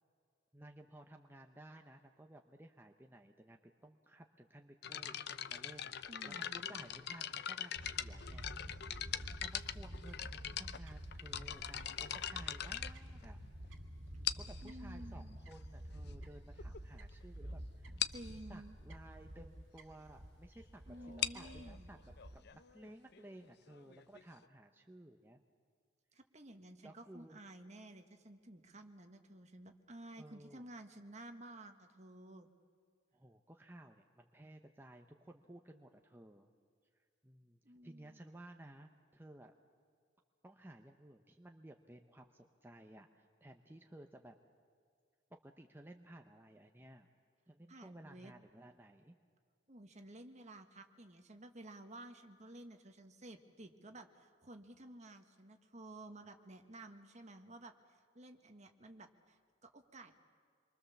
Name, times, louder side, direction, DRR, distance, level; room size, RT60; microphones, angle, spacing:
voice 1, 0.5-5.2 5.5-6.0 6.2-8.5 8.8-9.0 9.3-13.4 13.7-13.8 14.4-17.9 18.5-25.4 26.8-27.4 30.2-30.6 33.1-36.5 37.2-39.5 40.4-44.4 45.4-47.1 47.5-49.2, right 1 dB, 10° right, 3 dB, 0.8 m, -56 dB
sound 1, 4.8-13.7 14.2-14.7 15.5-15.6 16.2-16.3 16.6-16.8 17.1-17.2 17.5-17.6 18.0-18.3 21.0-24.5, left 10 dB, 60° left, 0.7 m, -42 dB
voice 2, 6.1-6.9 14.6-15.4 18.1-18.8 20.9-21.9 26.1-32.5 37.6-38.2 47.7-48.3 49.7-60.2, right 1 dB, 35° right, 6 dB, 1.6 m, -53 dB
Fowl / Bird, 7.8-22.4, right 1 dB, 80° right, 2.2 m, -50 dB
27.0 x 23.5 x 7.2 m, 2.2 s
head